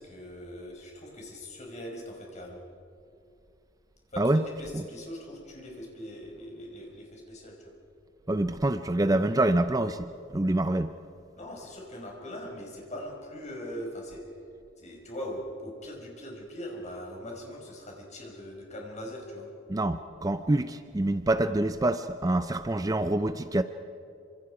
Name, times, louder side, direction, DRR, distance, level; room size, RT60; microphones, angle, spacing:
voice 1, 0.0-2.6 4.1-7.7 11.4-14.2 14.8-19.5, equal, 40° left, 0 dB, 5.3 m, -41 dB
voice 2, 8.3-10.9 19.7-23.6, right 1 dB, 20° right, 10 dB, 0.5 m, -26 dB
27.0 x 26.0 x 4.9 m, 2.6 s
head